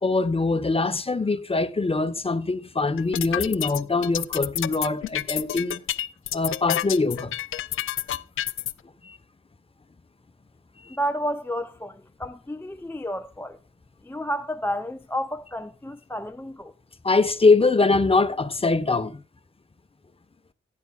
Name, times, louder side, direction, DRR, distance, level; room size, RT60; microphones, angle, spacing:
voice 1, 0.0-5.8 6.3-7.3 9.0-9.2 10.8-11.0 17.0-19.2, left 3 dB, 30° left, 1.2 m, -23 dB
sound 1, 3.0-8.7, left 12 dB, 85° left, 0.5 m, -29 dB
voice 2, 10.9-13.6 14.0-16.7, equal, 10° left, 0.6 m, -31 dB
16.0 x 9.7 x 2.4 m
cardioid pair, 75°, 21 cm